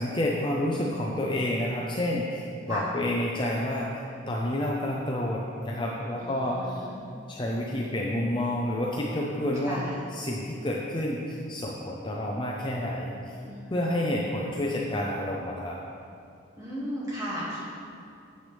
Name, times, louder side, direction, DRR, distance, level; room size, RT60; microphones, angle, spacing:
voice 1, 0.0-6.8 7.3-9.8 10.1-13.4 13.7-15.8, left 1 dB, 25° left, -3 dB, 0.5 m, -29 dB
voice 2, 6.1-7.0 9.5-10.0 13.4-14.0 16.6-17.7, equal, 15° right, -9 dB, 2.1 m, -36 dB
8.9 x 7.7 x 3.4 m, 2.4 s
head